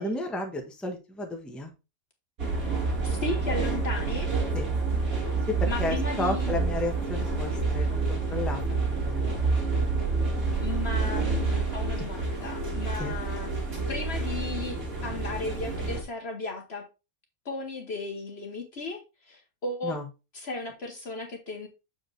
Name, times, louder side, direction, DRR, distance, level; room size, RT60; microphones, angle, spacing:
voice 1, 0.0-1.7 4.5-4.7 5.5-9.5 13.0-13.1 19.8-20.1, left 1 dB, ahead, 1.1 m, -33 dB
sound 1, 2.4-16.0, right 3 dB, 60° right, 2.5 m, -28 dB
voice 2, 3.0-4.3 5.6-6.6 10.6-13.5 13.9-16.9 17.4-20.0 20.3-21.7, left 3 dB, 45° left, 1.3 m, -35 dB
7.5 x 4.9 x 3.3 m
omnidirectional pair, 1.6 m